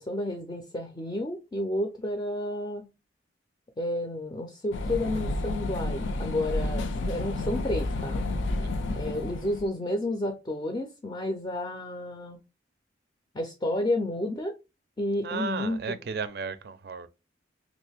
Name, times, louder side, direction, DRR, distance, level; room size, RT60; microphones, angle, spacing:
voice 1, 0.0-2.9 3.8-8.3 8.9-12.4 13.3-14.6 15.0-16.0, left 1 dB, 25° left, 0.4 m, -31 dB
sound 1, 4.7-9.7, left 2 dB, 90° left, 0.4 m, -30 dB
voice 2, 8.6-9.0 15.2-17.1, right 5 dB, 55° right, 0.4 m, -35 dB
3.0 x 2.5 x 3.3 m
head